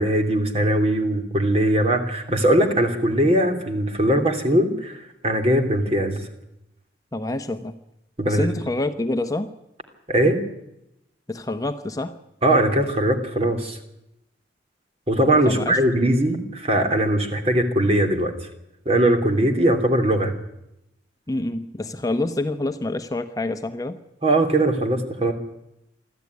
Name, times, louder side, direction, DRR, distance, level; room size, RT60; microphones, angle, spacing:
voice 1, 0.0-5.0 5.2-6.3 8.2-8.5 10.1-10.4 12.4-13.8 15.1-18.3 18.8-20.3 24.2-25.3, right 1 dB, 35° right, 6 dB, 3.0 m, -20 dB
voice 2, 7.1-7.7 8.3-9.5 11.3-12.1 15.4-15.8 21.3-24.0, left 2 dB, 20° left, 7 dB, 0.9 m, -27 dB
24.5 x 14.0 x 9.5 m, 0.85 s
head